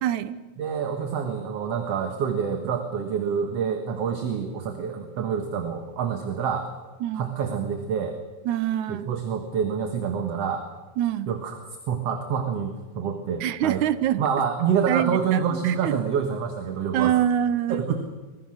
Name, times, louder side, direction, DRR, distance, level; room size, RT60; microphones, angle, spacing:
voice 1, 0.0-0.4 7.0-7.3 8.5-9.1 11.0-11.3 13.4-14.2 14.9-16.0 16.9-17.9, right 11 dB, 85° right, 14 dB, 2.4 m, -25 dB
voice 2, 0.6-6.7 7.1-8.1 8.9-10.6 11.3-13.8 14.2-17.1 17.7-18.0, right 7 dB, 60° right, 6 dB, 2.5 m, -27 dB
26.0 x 21.5 x 6.5 m, 1.3 s
omnidirectional pair, 3.3 m